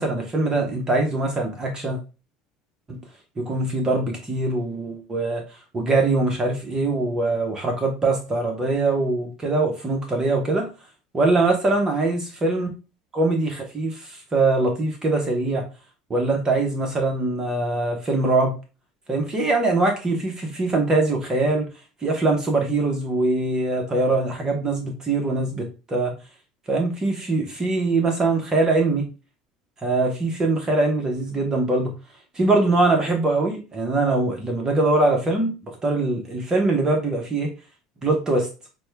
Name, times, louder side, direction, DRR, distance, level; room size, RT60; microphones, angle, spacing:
voice 1, 0.0-2.0 2.9-3.0 3.4-5.4 5.7-10.7 11.1-12.7 13.1-15.6 16.1-18.5 19.1-21.7 22.0-26.1 26.7-29.1 29.8-31.9 32.3-37.5 38.0-38.5, right 2 dB, 25° right, 2 dB, 1.0 m, -22 dB
6.0 x 2.3 x 3.3 m, 0.31 s
supercardioid pair, 95°, 3 cm